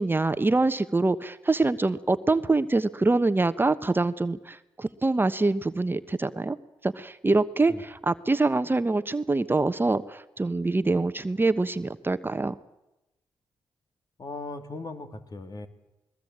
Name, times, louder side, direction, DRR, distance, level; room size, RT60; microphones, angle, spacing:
voice 1, 0.0-6.6 6.8-12.5, right 3 dB, 25° right, 11 dB, 1.2 m, -25 dB
voice 2, 14.2-15.7, left 3 dB, 45° left, 8 dB, 2.9 m, -38 dB
21.5 x 20.5 x 8.8 m, 0.95 s
supercardioid pair, 55°, 9 cm